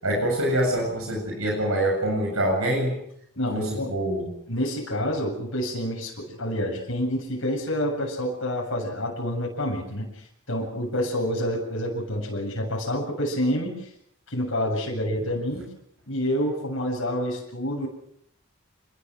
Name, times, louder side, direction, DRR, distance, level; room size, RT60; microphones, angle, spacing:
voice 1, 0.0-3.0 3.5-4.3, right 1 dB, 80° right, 0 dB, 7.7 m, -25 dB
voice 2, 3.4-3.9 4.5-10.1 10.5-13.7 14.3-15.6 16.1-17.9, equal, 60° left, -1 dB, 7.5 m, -28 dB
28.0 x 21.5 x 6.5 m, 0.71 s
head